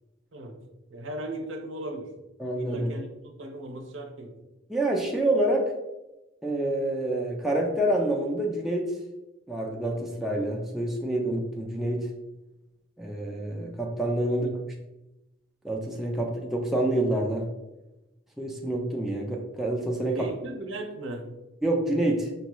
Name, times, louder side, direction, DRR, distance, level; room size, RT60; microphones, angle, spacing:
voice 1, 0.9-2.1 2.6-4.3 14.3-14.6 20.1-21.3, right 1 dB, 75° right, 3 dB, 0.7 m, -37 dB
voice 2, 2.4-2.9 4.7-5.7 6.4-8.9 9.5-12.1 13.0-14.5 15.6-17.5 18.4-20.2 21.6-22.3, right 1 dB, ahead, -1 dB, 0.4 m, -27 dB
5.2 x 2.3 x 3.0 m, 0.98 s
head